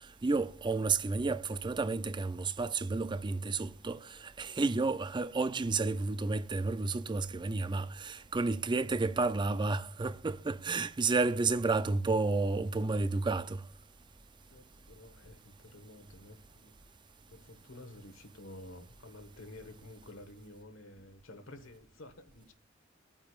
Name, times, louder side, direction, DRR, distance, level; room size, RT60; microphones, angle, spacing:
voice 1, 0.2-13.6, right 3 dB, 25° right, 0.4 m, -31 dB
voice 2, 14.5-16.7 17.3-22.5, left 1 dB, 75° left, 1.3 m, -51 dB
23.5 x 9.0 x 2.4 m
head